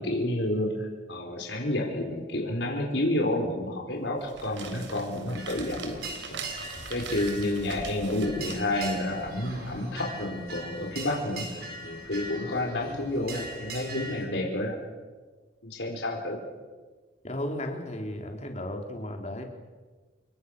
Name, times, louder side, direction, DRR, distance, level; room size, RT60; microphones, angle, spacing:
voice 1, 0.0-6.4 6.9-11.5 11.8-14.7 15.6-16.4, left 1 dB, 70° left, 0 dB, 4.6 m, -30 dB
sound 1, 4.1-9.8, right 4 dB, 80° right, 3.9 m, -43 dB
sound 2, 5.3-14.2, right 2 dB, 55° right, 6.1 m, -41 dB
voice 2, 17.2-19.4, left 1 dB, 35° left, 3 dB, 3.6 m, -34 dB
29.0 x 23.5 x 6.7 m, 1.4 s
head